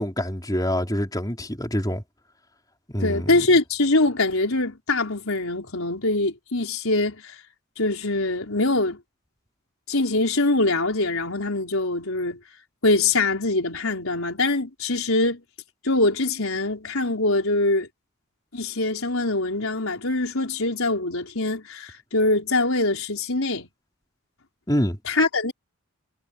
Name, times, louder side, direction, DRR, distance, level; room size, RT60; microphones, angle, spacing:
voice 1, 0.0-2.0 2.9-3.5 24.7-25.0, equal, 15° left, 4.8 m, -26 dB
voice 2, 3.0-7.3 7.8-9.0 9.9-12.4 12.8-15.4 15.8-17.9 18.5-23.7 25.1-25.5, left 2 dB, 75° left, 4.4 m, -23 dB
head